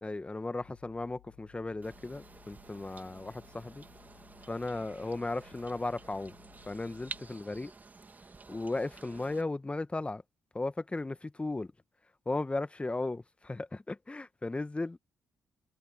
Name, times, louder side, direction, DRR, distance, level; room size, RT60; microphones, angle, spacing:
voice 1, 0.0-3.8 4.5-6.4 6.7-7.7 8.5-10.2 10.5-11.7 12.2-15.0, left 2 dB, 20° left, 1.5 m, -36 dB
sound 1, 0.6-7.4, left 26 dB, 80° left, 3.4 m, -60 dB
sound 2, 1.8-9.4, right 3 dB, 30° right, 2.7 m, -50 dB
hypercardioid pair, 45°, 6 cm